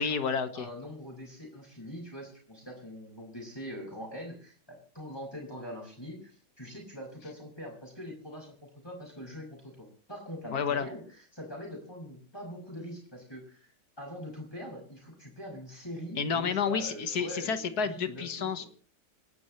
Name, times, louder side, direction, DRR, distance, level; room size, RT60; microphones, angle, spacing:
voice 1, 0.0-0.7 10.5-10.9 16.1-18.6, left 6 dB, 65° left, 10 dB, 1.8 m, -30 dB
voice 2, 0.5-11.0 11.3-13.7 14.0-18.7, equal, 15° left, -1 dB, 6.1 m, -43 dB
28.0 x 12.0 x 3.2 m, 0.42 s
omnidirectional pair, 1.8 m